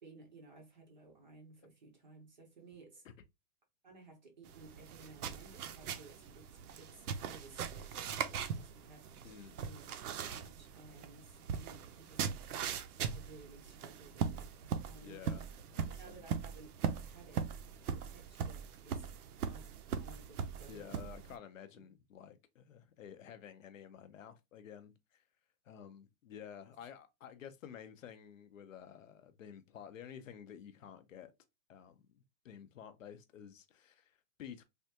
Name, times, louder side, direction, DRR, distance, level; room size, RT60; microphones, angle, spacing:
voice 1, 0.0-3.0 3.8-9.9 10.2-12.8 13.1-15.5 16.0-17.5 17.9-19.1 19.4-21.1, right 3 dB, 30° right, 0.5 m, -57 dB
sound 1, 4.5-21.4, right 7 dB, 70° right, 0.6 m, -40 dB
voice 2, 9.2-9.6 15.0-15.4 15.7-16.2 20.7-25.2 25.6-31.3 31.7-34.6, left 8 dB, 55° left, 0.5 m, -52 dB
3.4 x 2.3 x 2.7 m
hypercardioid pair, 175°, 47 cm